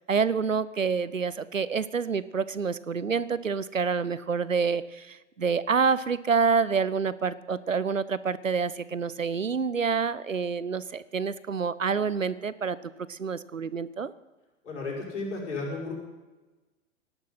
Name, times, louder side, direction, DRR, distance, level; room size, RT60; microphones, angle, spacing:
voice 1, 0.1-14.1, right 5 dB, 85° right, 18 dB, 0.7 m, -27 dB
voice 2, 14.6-15.9, left 3 dB, 65° left, -2 dB, 6.1 m, -33 dB
17.5 x 12.0 x 5.8 m, 1.2 s
figure-of-eight pair, 95°, 38 cm